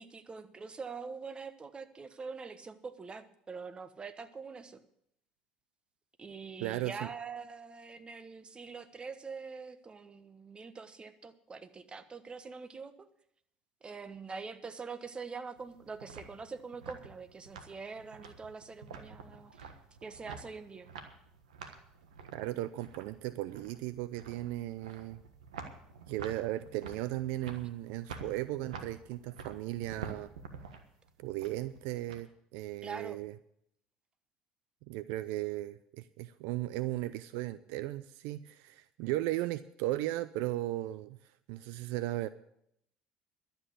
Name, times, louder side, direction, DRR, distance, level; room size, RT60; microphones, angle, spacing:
voice 1, 0.0-4.8 6.2-13.1 13.8-19.7 20.0-20.9 32.8-33.2, right 5 dB, 30° right, 11 dB, 1.2 m, -44 dB
voice 2, 6.6-7.1 22.3-25.2 26.1-30.3 31.2-33.3 34.9-41.2 41.5-42.3, right 16 dB, 70° right, 15 dB, 0.5 m, -36 dB
sound 1, 15.6-32.2, right 5 dB, 90° right, 1.3 m, -49 dB
12.0 x 8.1 x 8.3 m, 0.73 s
hypercardioid pair, 70°, 4 cm